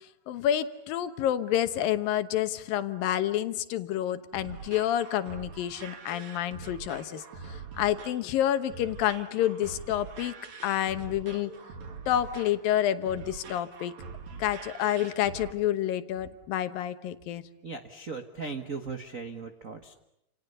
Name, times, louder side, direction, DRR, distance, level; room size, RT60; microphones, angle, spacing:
voice 1, 0.3-7.2 7.8-10.3 10.6-11.5 12.1-14.0 14.4-17.4, left 11 dB, 90° left, 11 dB, 3.0 m, -28 dB
sound 1, 4.0-15.5, right 5 dB, 55° right, 3.5 m, -44 dB
voice 2, 17.6-19.9, right 4 dB, 80° right, 7 dB, 0.7 m, -38 dB
30.0 x 28.5 x 6.9 m, 0.82 s
omnidirectional pair, 3.9 m